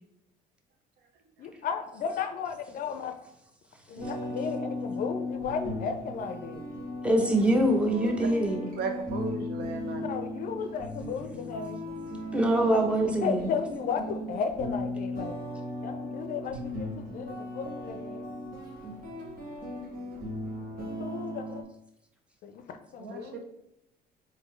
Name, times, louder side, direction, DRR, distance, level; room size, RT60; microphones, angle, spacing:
voice 1, 1.4-3.1 3.9-6.6 10.0-11.8 12.6-12.8 13.2-15.4 15.8-18.3 20.7-21.6 22.4-23.4, left 6 dB, 55° left, 8 dB, 0.4 m, -34 dB
sound 1, 4.0-21.6, left 1 dB, 55° right, 1.3 m, -37 dB
voice 2, 7.0-8.7 12.3-13.5, right 1 dB, 5° right, 2 dB, 0.6 m, -24 dB
voice 3, 8.7-10.1 23.0-23.4, right 5 dB, 75° right, 5 dB, 0.6 m, -36 dB
3.7 x 2.7 x 3.1 m, 0.85 s
cardioid pair, 110°, 17 cm